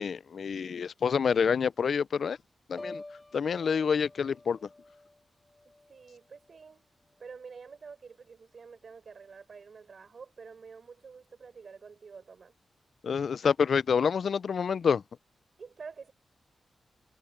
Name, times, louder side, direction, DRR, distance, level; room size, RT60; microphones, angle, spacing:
voice 1, 0.0-2.4 2.7-3.0 3.3-4.6 13.0-15.0, left 6 dB, 70° left, 0.3 m, -27 dB
Piano, 2.8-6.7 7.1-7.5, left 2 dB, 25° left, 6.4 m, -49 dB
voice 2, 5.9-6.8 7.2-12.6 15.6-16.1, right 5 dB, 60° right, 4.7 m, -48 dB
cardioid pair, 75°, 0 cm